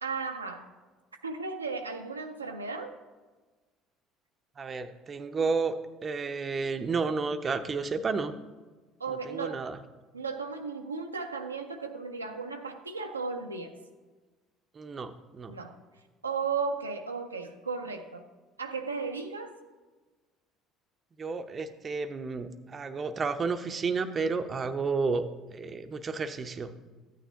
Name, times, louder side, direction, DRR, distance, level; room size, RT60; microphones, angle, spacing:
voice 1, 0.0-0.7 1.1-3.0 9.0-9.7 10.1-13.8 15.5-15.8 16.2-18.3 18.6-19.6, right 4 dB, 85° right, 4 dB, 0.5 m, -35 dB
voice 2, 4.6-5.7 6.0-8.3 9.1-9.8 14.7-15.5 21.2-26.7, right 4 dB, 30° right, 9 dB, 0.6 m, -31 dB
13.5 x 9.1 x 2.8 m, 1.3 s
figure-of-eight pair, 55°, 0 cm